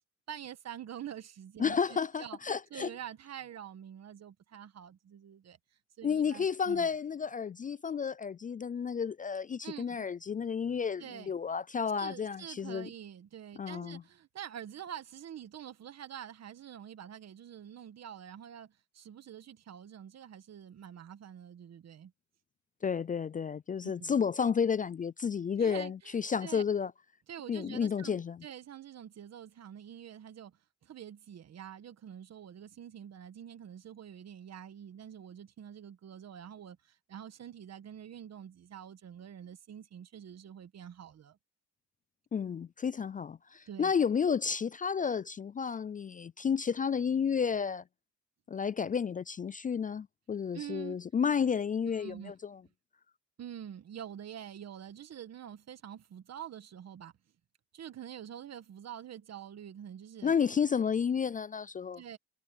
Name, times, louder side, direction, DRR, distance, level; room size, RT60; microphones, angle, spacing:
voice 1, 0.3-2.4 2.7-5.6 6.0-6.9 9.6-10.1 11.0-11.3 12.0-22.1 23.8-24.2 25.6-26.6 27.3-41.4 43.7-43.9 50.5-51.0 51.9-52.3 53.4-57.1 57.7-60.3 62.0-62.2, right 9 dB, 60° right, 1.7 m, -46 dB
voice 2, 1.6-2.9 6.0-12.9 13.6-14.0 22.8-26.9 27.5-28.4 42.3-47.8 48.5-52.6 60.2-62.0, left 6 dB, 25° left, 0.4 m, -31 dB
cardioid pair, 90°, 30 cm